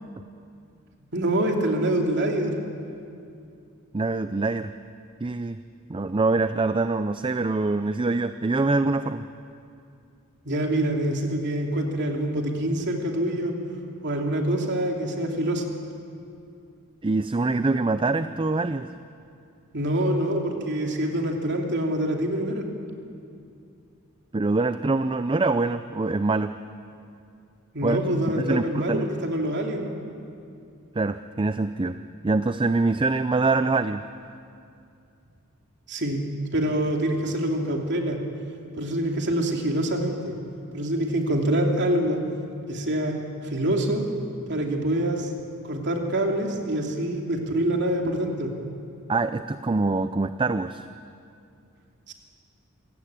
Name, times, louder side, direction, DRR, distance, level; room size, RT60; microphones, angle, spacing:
voice 1, 1.1-2.6 10.4-13.6 14.0-15.6 19.7-22.7 27.7-29.9 35.9-36.2 36.5-38.2 38.8-40.4 40.7-42.2 42.7-44.1 44.5-45.3 45.6-48.5 52.1-52.2, right 1 dB, 55° right, 2 dB, 2.9 m, -25 dB
voice 2, 3.9-4.7 5.2-5.6 5.9-9.3 17.0-18.9 24.3-26.5 27.8-28.0 28.4-29.1 31.0-32.0 32.2-34.0 49.1-50.9, right 3 dB, 25° right, 11 dB, 0.5 m, -24 dB
26.5 x 17.0 x 8.8 m, 2.5 s
head